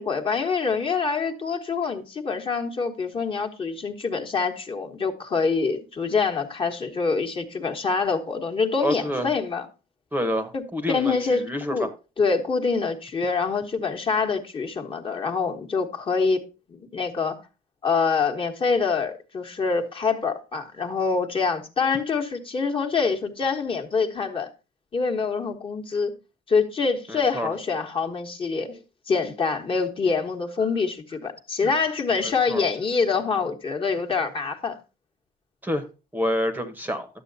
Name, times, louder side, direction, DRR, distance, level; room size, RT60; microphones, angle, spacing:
voice 1, 0.0-9.7 10.5-11.9 12.2-17.4 17.8-24.5 24.9-26.1 26.5-28.8 29.1-34.8, left 5 dB, 30° left, 1.3 m, -25 dB
voice 2, 8.8-9.3 10.1-11.9 27.1-27.5 32.2-32.6 35.6-35.8 36.1-37.1, equal, 10° right, 1.0 m, -28 dB
11.5 x 7.6 x 2.7 m
cardioid pair, 110°, 17 cm